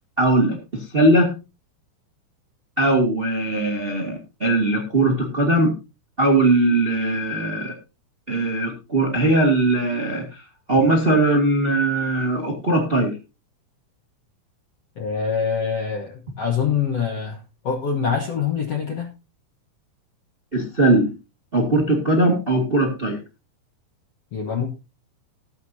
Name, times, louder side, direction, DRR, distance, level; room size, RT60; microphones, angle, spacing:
voice 1, 0.2-1.3 2.8-5.7 6.2-7.7 8.3-13.2 20.5-21.1 21.5-23.2, right 2 dB, 30° right, 1 dB, 1.1 m, -20 dB
voice 2, 15.0-19.1 24.3-24.7, left 6 dB, 60° left, 2 dB, 1.6 m, -25 dB
19.5 x 8.3 x 2.8 m, 0.28 s
omnidirectional pair, 4.7 m